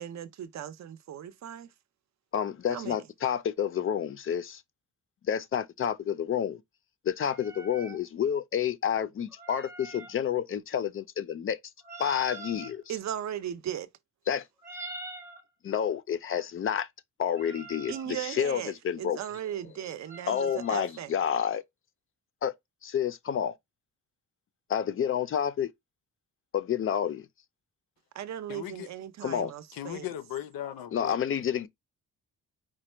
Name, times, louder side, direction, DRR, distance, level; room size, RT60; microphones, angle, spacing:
voice 1, 0.0-1.7 2.7-3.0 12.9-13.9 17.9-21.1 28.1-30.1, right 10 dB, 50° right, 0.5 m, -37 dB
voice 2, 2.3-4.6 5.2-6.6 7.0-11.6 12.0-12.8 14.3-14.4 15.6-16.9 17.2-19.2 20.3-21.6 22.4-22.5 22.8-23.6 24.7-25.7 26.5-27.3 29.2-29.5 30.9-31.7, left 8 dB, 40° left, 0.4 m, -29 dB
sound 1, 7.3-8.0 9.3-10.2 11.8-12.7 14.6-15.4 17.3-18.1 20.1-20.8, right 2 dB, 10° right, 0.6 m, -44 dB
voice 3, 28.5-28.9 29.7-31.2, left 12 dB, 75° left, 0.7 m, -37 dB
5.0 x 2.2 x 4.3 m
wide cardioid pair, 175°, 35 cm